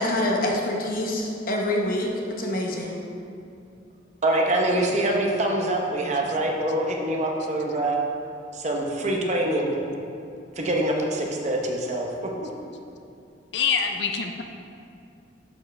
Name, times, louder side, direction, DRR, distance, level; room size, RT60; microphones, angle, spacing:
voice 1, 0.0-2.1 2.4-2.9, left 1 dB, 50° left, -1 dB, 0.9 m, -25 dB
voice 2, 4.2-8.0 8.5-9.7 10.6-12.1 12.4-12.5, right 1 dB, 40° right, 0 dB, 0.8 m, -24 dB
voice 3, 13.5-14.4, left 6 dB, 65° left, 5 dB, 0.5 m, -25 dB
11.0 x 4.7 x 3.3 m, 2.6 s
head